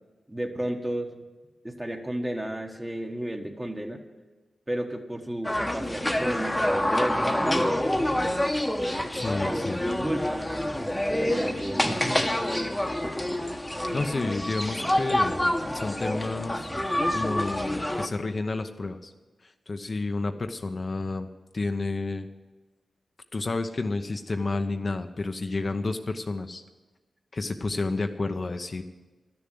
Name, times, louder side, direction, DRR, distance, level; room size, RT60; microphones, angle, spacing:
voice 1, 0.3-1.1 1.6-4.0 4.7-7.8 9.4-12.3, right 1 dB, 15° right, 3 dB, 1.5 m, -33 dB
sound 1, 5.4-18.1, left 1 dB, 10° left, 1.1 m, -27 dB
voice 2, 9.1-9.8 13.9-16.7 17.1-19.1 19.4-22.3 23.3-26.6 27.3-28.8, left 3 dB, 45° left, 7 dB, 0.7 m, -30 dB
12.0 x 6.9 x 9.3 m, 1.2 s
cardioid pair, 60°, 0 cm